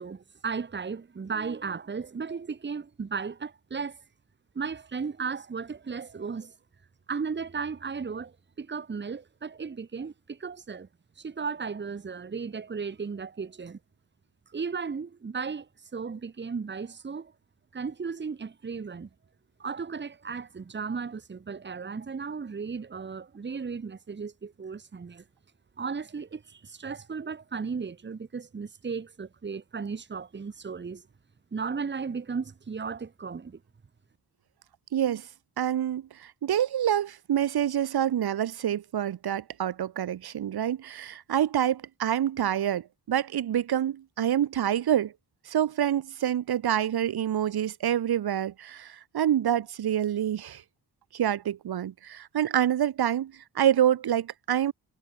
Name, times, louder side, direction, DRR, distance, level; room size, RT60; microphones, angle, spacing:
voice 1, 0.0-4.0 4.5-6.5 7.1-10.9 11.2-13.8 14.5-17.3 17.7-19.1 19.6-25.2 25.8-31.0 31.5-33.6, right 5 dB, 30° right, 1.4 m, -35 dB
voice 2, 34.9-35.3 35.6-45.1 45.4-50.6 51.1-54.7, right 10 dB, 75° right, 1.3 m, -27 dB
wide cardioid pair, 145°, 38 cm